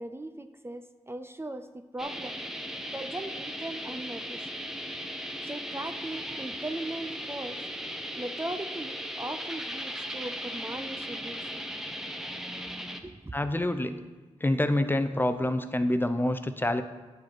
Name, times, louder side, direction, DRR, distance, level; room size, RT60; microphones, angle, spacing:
voice 1, 0.0-2.4 2.9-4.5 5.4-7.6 8.2-11.6 13.0-13.3, right 1 dB, 20° right, 8 dB, 0.6 m, -39 dB
sound 1, 2.0-13.0, equal, 5° right, 1.0 m, -37 dB
voice 2, 13.3-14.0 14.4-16.8, left 1 dB, 15° left, 9 dB, 0.7 m, -27 dB
9.5 x 6.3 x 4.5 m, 1.3 s
supercardioid pair, 45°, 13 cm